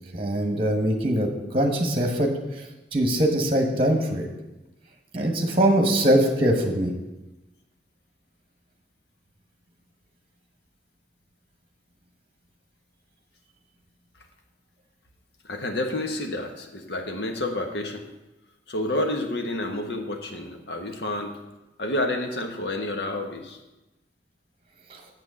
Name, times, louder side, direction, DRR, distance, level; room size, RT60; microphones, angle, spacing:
voice 1, 0.1-1.3 1.5-2.3 2.9-4.3 5.1-6.9, right 1 dB, 30° right, 4 dB, 1.2 m, -22 dB
voice 2, 15.4-18.0 18.7-21.3 21.8-23.6, left 1 dB, 65° left, 4 dB, 1.3 m, -29 dB
7.4 x 6.1 x 7.5 m, 1.0 s
head